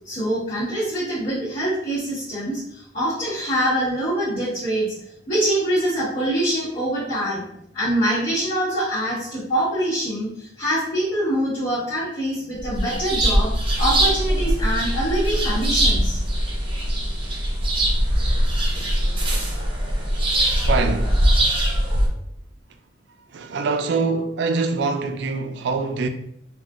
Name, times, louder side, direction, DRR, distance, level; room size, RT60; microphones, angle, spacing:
voice 1, 0.0-4.9 5.3-7.5 7.7-13.5 13.8-16.2, right 1 dB, 45° left, 1.3 m, -24 dB
sound 1, 12.6-22.1, right 1 dB, 30° right, 0.6 m, -21 dB
voice 2, 20.6-21.2 23.3-26.1, right 4 dB, 65° right, 0.3 m, -24 dB
3.5 x 2.4 x 2.4 m
head